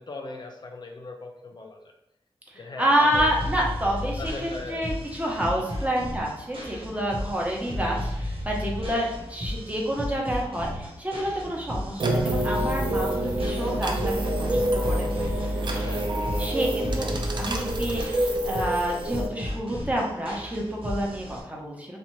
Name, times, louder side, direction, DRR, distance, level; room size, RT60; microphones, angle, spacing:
voice 1, 0.0-1.9 2.5-3.3 4.2-4.9 5.6-5.9 13.5-13.8 15.7-16.1, left 3 dB, 50° left, 2 dB, 0.3 m, -39 dB
voice 2, 2.5-15.6 16.4-18.0 18.4-22.0, equal, 15° right, -2 dB, 0.7 m, -28 dB
sound 1, 3.1-21.4, left 1 dB, 75° right, 0.7 m, -34 dB
sound 2, 12.0-19.3, right 1 dB, 55° right, 0.4 m, -27 dB
2.7 x 2.1 x 3.0 m, 0.83 s
wide cardioid pair, 80°, 9 cm